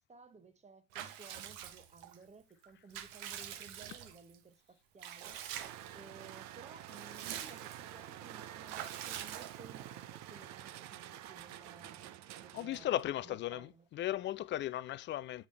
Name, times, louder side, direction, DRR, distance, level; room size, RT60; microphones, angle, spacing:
voice 1, 0.0-5.4 5.9-12.1 12.4-12.9 13.2-14.0, right 4 dB, 15° right, 1.1 m, -57 dB
Water / Bathtub (filling or washing) / Liquid, 0.9-2.2 2.6-4.4 5.0-6.0 6.3-6.4 6.7-7.9 8.7-9.9, right 10 dB, 60° right, 1.2 m, -45 dB
sound 1, 5.5-13.2, right 12 dB, 45° right, 0.7 m, -49 dB
voice 2, 12.5-15.5, left 13 dB, 30° left, 0.4 m, -36 dB
8.7 x 4.9 x 3.4 m
hypercardioid pair, 85°, 41 cm